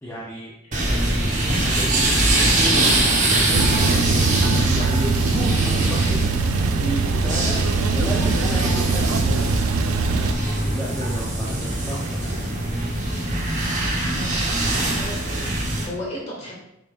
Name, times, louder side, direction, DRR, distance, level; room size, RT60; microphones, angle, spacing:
voice 1, 0.0-0.5 0.9-6.3 6.8-7.6 7.9-9.7 10.0-12.4 16.4-16.5, equal, 10° left, -6 dB, 0.8 m, -33 dB
sound 1, 0.7-15.9, right 1 dB, 35° right, 1.2 m, -22 dB
Male speech man speaking / Car / Idling, 3.5-10.3, right 5 dB, 80° right, 0.4 m, -23 dB
voice 2, 14.1-15.6 15.8-16.5, equal, 30° left, -5 dB, 2.1 m, -35 dB
6.4 x 6.0 x 2.6 m, 0.86 s
head